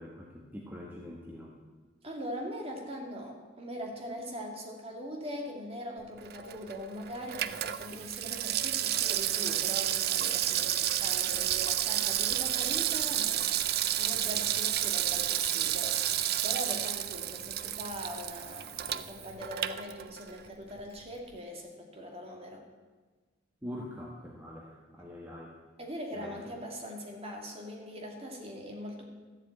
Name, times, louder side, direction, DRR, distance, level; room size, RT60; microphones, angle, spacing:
voice 1, 0.0-1.5 23.6-25.6 26.1-26.4, left 1 dB, 10° right, -3 dB, 1.3 m, -44 dB
voice 2, 2.0-13.5 14.0-16.0 16.4-22.7 25.8-29.1, equal, 30° right, 1 dB, 2.2 m, -41 dB
Water tap faucet / Sink (filling or washing), 6.2-20.5 20.8-20.9, right 12 dB, 50° right, 0.5 m, -31 dB
13.0 x 7.6 x 8.8 m, 1.3 s
head